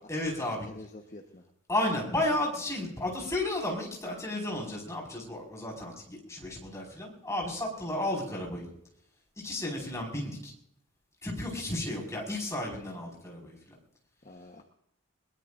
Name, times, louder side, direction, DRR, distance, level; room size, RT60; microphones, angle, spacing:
voice 1, 0.1-0.7 1.7-8.7 9.4-10.5 11.2-13.8, left 1 dB, 15° left, -2 dB, 5.3 m, -33 dB
voice 2, 0.6-1.4 2.1-2.2 14.2-14.6, left 1 dB, 35° left, 2 dB, 1.2 m, -48 dB
22.0 x 21.0 x 2.6 m, 0.73 s
head